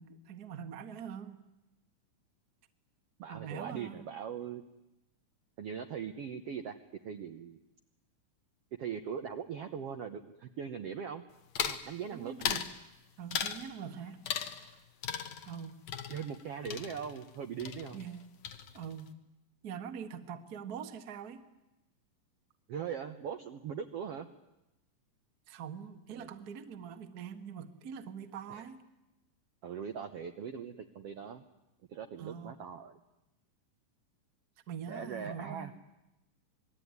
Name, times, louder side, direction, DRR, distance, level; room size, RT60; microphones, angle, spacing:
voice 1, 0.0-1.4 3.3-4.1 12.1-12.7 13.2-14.8 15.4-15.8 17.9-18.3 18.7-19.1 19.6-21.4 25.5-28.8 32.2-32.5 34.7-35.8, right 7 dB, 40° right, 8 dB, 1.3 m, -44 dB
voice 2, 3.2-4.6 5.6-6.7 7.0-7.6 8.8-11.2 11.6-12.3 14.0-14.1 16.1-18.0 22.7-24.3 26.1-26.3 28.5-28.6 29.6-31.4 31.9-32.9 34.9-35.7, right 7 dB, 65° right, 7 dB, 1.6 m, -40 dB
sound 1, 11.6-11.9 12.4-12.8 13.3-13.7 14.3-14.8 15.0-17.4 17.6-18.2 18.5-19.0, left 8 dB, 60° left, 2.4 m, -37 dB
27.5 x 20.5 x 9.6 m, 0.95 s
omnidirectional pair, 4.0 m